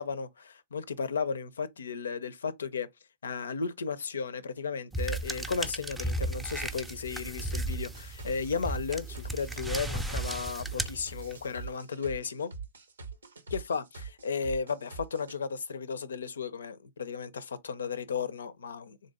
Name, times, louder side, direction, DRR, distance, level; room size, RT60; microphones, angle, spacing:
voice 1, 0.0-2.9 3.2-12.5 13.5-19.0, left 5 dB, 75° left, 0.4 m, -34 dB
sound 1, 4.9-11.6, right 2 dB, 5° right, 0.5 m, -35 dB
sound 2, 7.7-15.4, right 5 dB, 80° right, 0.7 m, -43 dB
3.6 x 2.7 x 3.6 m
figure-of-eight pair, 105°, 0 cm